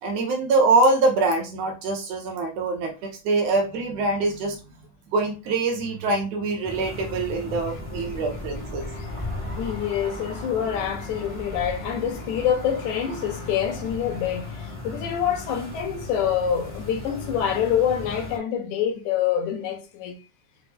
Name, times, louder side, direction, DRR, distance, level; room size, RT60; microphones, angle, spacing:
voice 1, 0.0-4.6 5.1-8.9, right 3 dB, 70° right, 1.8 m, -24 dB
sound 1, 6.6-18.4, left 2 dB, 25° left, 0.7 m, -36 dB
voice 2, 9.5-20.2, left 9 dB, 85° left, 2.1 m, -26 dB
5.8 x 2.0 x 3.4 m
omnidirectional pair, 3.4 m